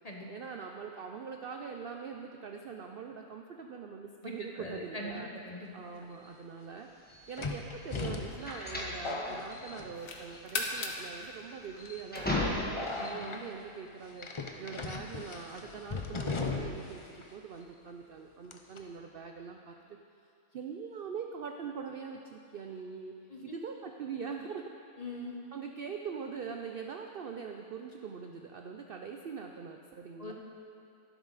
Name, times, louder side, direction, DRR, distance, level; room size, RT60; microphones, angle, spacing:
voice 1, 0.3-5.3 5.7-6.9 7.3-12.6 13.0-14.3 14.6-20.0 20.5-23.1 23.4-24.7 25.5-30.3, right 6 dB, 70° right, 3 dB, 0.5 m, -43 dB
voice 2, 4.2-5.7 13.1-13.4 23.3-23.5 25.0-25.4 30.2-30.3, left 1 dB, 30° left, -1 dB, 1.0 m, -42 dB
sound 1, 6.0-6.1 7.4-10.4 10.6-11.1 11.8-12.0 12.8-13.4 14.2-16.9 17.2-17.3 18.5-18.8, left 3 dB, 45° left, 0.3 m, -38 dB
sound 2, 7.1-13.0, left 1 dB, 5° left, 1.5 m, -36 dB
sound 3, 7.7-9.2 9.6-12.6, left 3 dB, 65° left, 1.4 m, -40 dB
12.0 x 11.0 x 4.0 m, 2.6 s
omnidirectional pair, 1.6 m